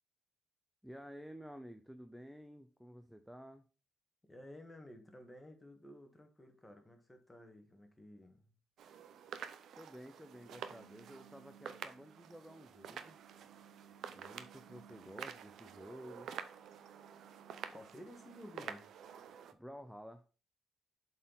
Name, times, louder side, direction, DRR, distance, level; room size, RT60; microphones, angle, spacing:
voice 1, 0.8-3.6 9.7-13.2 14.1-16.3 19.5-20.2, equal, ahead, 8 dB, 0.6 m, -52 dB
voice 2, 4.2-8.5 17.7-18.9, left 1 dB, 15° left, 5 dB, 1.6 m, -54 dB
sound 1, 8.8-19.5, right 8 dB, 70° right, 0.6 m, -49 dB
7.4 x 4.4 x 3.9 m, 0.35 s
cardioid pair, 90°, 0 cm